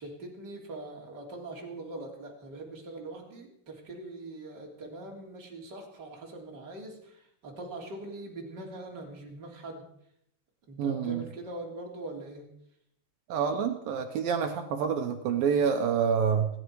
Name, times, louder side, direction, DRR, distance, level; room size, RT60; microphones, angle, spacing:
voice 1, 0.0-9.8 10.7-12.4, right 2 dB, 25° right, -1 dB, 2.9 m, -42 dB
voice 2, 10.8-11.3 13.3-16.5, right 7 dB, 80° right, 5 dB, 2.1 m, -27 dB
28.0 x 10.0 x 4.8 m, 0.73 s
omnidirectional pair, 5.6 m